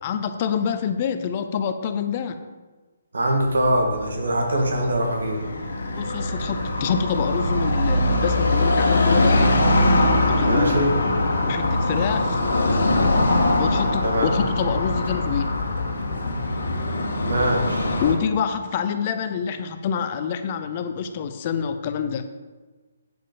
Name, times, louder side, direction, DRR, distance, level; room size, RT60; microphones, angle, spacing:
voice 1, 0.0-2.4 5.9-9.5 10.3-10.8 11.4-12.4 13.6-15.5 18.0-22.2, left 7 dB, 35° left, 9 dB, 0.6 m, -26 dB
voice 2, 3.1-5.5 10.4-10.9 14.0-14.3 17.2-17.9, right 1 dB, 85° right, 2 dB, 2.0 m, -23 dB
Car passing by / Traffic noise roadway noise, 3.4-18.1, left 2 dB, 90° left, 1.5 m, -22 dB
8.8 x 5.4 x 5.2 m, 1.3 s
hypercardioid pair, 165°, 0 cm